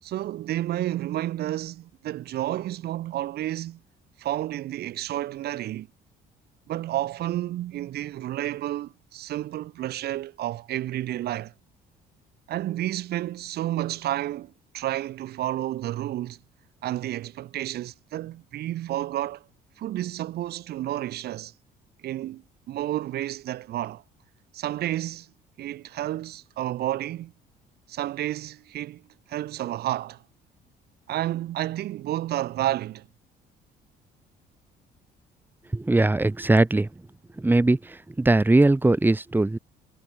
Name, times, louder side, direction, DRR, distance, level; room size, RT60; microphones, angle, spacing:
voice 1, 0.0-3.8 4.2-5.9 6.7-11.5 12.5-16.4 16.8-19.4 19.8-21.5 22.0-24.0 24.5-25.3 25.6-27.3 27.9-29.0 29.3-30.2 31.1-33.1, right 14 dB, 70° right, 6.9 m, -30 dB
voice 2, 35.7-36.9 37.4-39.6, right 2 dB, 10° right, 3.3 m, -20 dB
cardioid pair, 110°, 17 cm